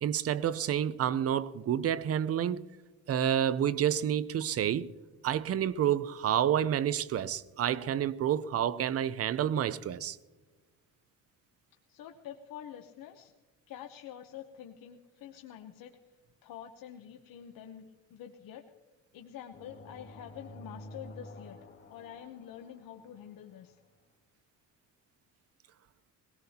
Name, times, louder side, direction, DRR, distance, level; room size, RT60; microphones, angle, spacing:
voice 1, 0.0-2.7 3.1-4.9 5.2-10.2, right 10 dB, 45° right, 0.5 m, -29 dB
voice 2, 11.9-13.3 13.7-15.9 16.4-18.6 19.1-21.6 21.9-23.8, left 10 dB, 75° left, 0.9 m, -47 dB
sound 1, 19.5-23.3, left 1 dB, 35° left, 1.8 m, -50 dB
21.5 x 18.0 x 2.8 m
cardioid pair, 135°, 34 cm